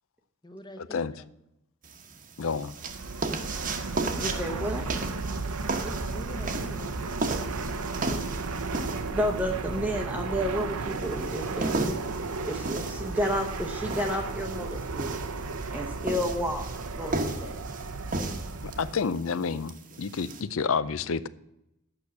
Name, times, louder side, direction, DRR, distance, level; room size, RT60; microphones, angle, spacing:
voice 1, 0.4-1.2 4.3-4.7 5.8-7.7, equal, 20° left, 0.9 m, -46 dB
sound 1, 1.8-20.4, right 3 dB, 35° right, 1.1 m, -35 dB
voice 2, 2.4-2.7 18.6-21.3, left 5 dB, 60° left, 0.5 m, -29 dB
Fixed-wing aircraft airplane, 2.7-19.1, right 3 dB, 75° right, 0.8 m, -34 dB
voice 3, 4.2-4.8 9.1-12.0 12.4-15.2 15.7-16.6 16.9-17.5, equal, 5° right, 0.8 m, -31 dB
8.9 x 6.2 x 8.2 m
head